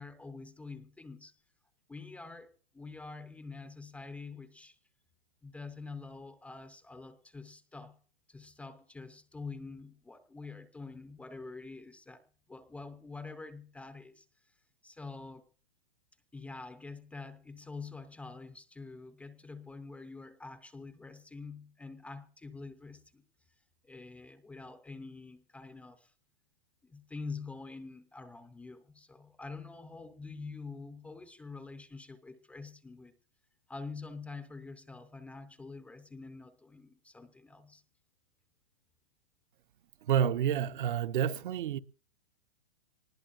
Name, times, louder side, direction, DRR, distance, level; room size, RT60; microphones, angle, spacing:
voice 1, 0.0-1.3 1.9-4.8 5.4-8.0 8.3-12.2 12.5-14.3 14.8-15.4 16.3-23.2 23.8-26.1 26.8-33.1 33.7-37.8, left 4 dB, 5° left, 0.6 m, -46 dB
voice 2, 40.0-41.8, right 9 dB, 55° right, 1.0 m, -29 dB
24.0 x 20.0 x 2.5 m
hypercardioid pair, 155°, 30 cm